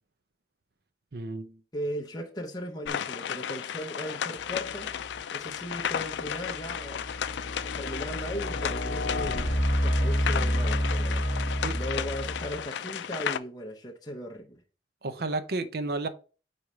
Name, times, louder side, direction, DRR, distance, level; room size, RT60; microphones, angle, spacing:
voice 1, 1.1-1.6 11.6-11.8 15.0-16.1, right 3 dB, 60° right, 0.6 m, -32 dB
voice 2, 1.7-4.9 5.3-7.0 7.8-9.5 9.8-11.3 11.7-14.6, equal, 20° left, 0.8 m, -37 dB
sound 1, 2.9-13.4, left 8 dB, 80° left, 0.4 m, -34 dB
sound 2, 4.9-5.2 5.8-12.7, equal, 60° left, 1.2 m, -29 dB
4.8 x 4.2 x 5.0 m
head